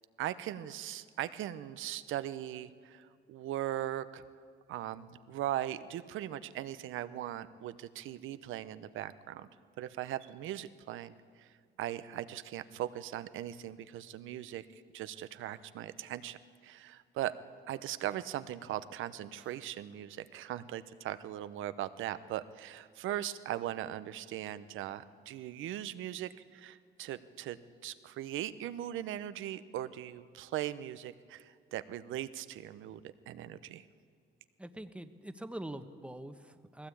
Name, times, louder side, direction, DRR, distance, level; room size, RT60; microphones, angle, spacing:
voice 1, 0.2-4.2 4.7-9.5 9.8-11.5 11.8-14.7 14.9-17.3 17.7-33.9, right 12 dB, 85° right, 14 dB, 0.8 m, -39 dB
voice 2, 34.6-36.9, right 1 dB, 5° right, 9 dB, 1.1 m, -44 dB
20.0 x 16.0 x 8.5 m, 2.2 s
cardioid pair, 90°, 20 cm